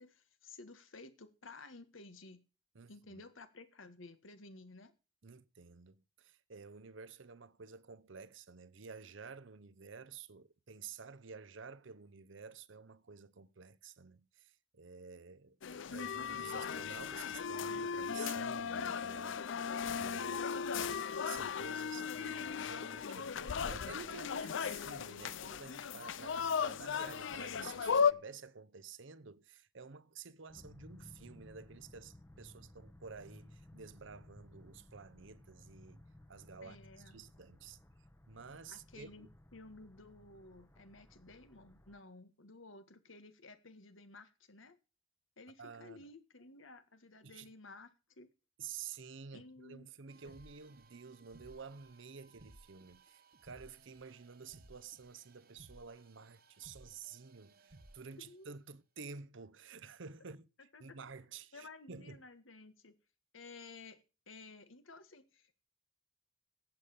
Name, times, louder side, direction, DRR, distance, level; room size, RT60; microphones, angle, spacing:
voice 1, 0.0-2.4 2.9-4.9 20.1-20.7 26.2-26.7 36.6-37.2 38.7-44.8 45.4-48.3 49.3-49.9 50.2-50.3 58.1-58.6 60.7-61.0 61.5-63.0 63.3-64.0 64.3-65.6, left 3 dB, 85° left, 1.8 m, -54 dB
voice 2, 2.7-3.2 5.2-19.5 20.0-20.4 21.2-36.0 36.3-36.8 37.1-37.8 38.3-39.3 45.6-46.1 47.2-47.5 48.6-60.5 60.8-62.2, right 5 dB, 70° right, 0.8 m, -51 dB
sound 1, 15.6-28.1, left 6 dB, 65° left, 0.5 m, -36 dB
sound 2, 30.5-42.0, left 1 dB, 15° left, 0.9 m, -59 dB
sound 3, 50.1-58.3, right 2 dB, 50° right, 1.3 m, -61 dB
11.5 x 8.3 x 6.8 m
head